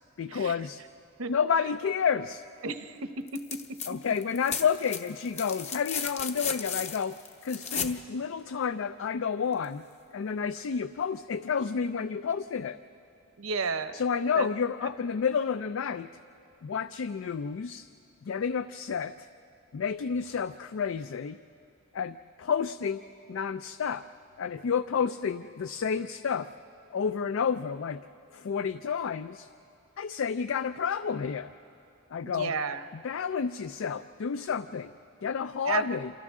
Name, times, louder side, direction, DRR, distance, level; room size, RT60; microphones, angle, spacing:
voice 1, 0.2-0.8 1.3-2.4 3.9-7.2 7.4-9.8 10.1-12.8 13.9-16.1 16.6-17.9 18.2-19.3 19.7-21.4 21.9-23.0 23.3-24.0 24.4-26.5 26.9-28.0 28.3-29.5 30.0-31.5 32.1-32.5 33.0-34.9 35.2-36.1, left 6 dB, 65° left, 13 dB, 0.4 m, -30 dB
voice 2, 2.6-3.0 13.4-13.9 14.4-14.5 32.3-32.8 35.6-35.8, right 5 dB, 80° right, 10 dB, 0.9 m, -31 dB
sound 1, 3.3-3.9 4.2-8.0 9.6-9.7, left 6 dB, 30° left, 0.9 m, -35 dB
28.0 x 27.5 x 3.7 m, 2.8 s
head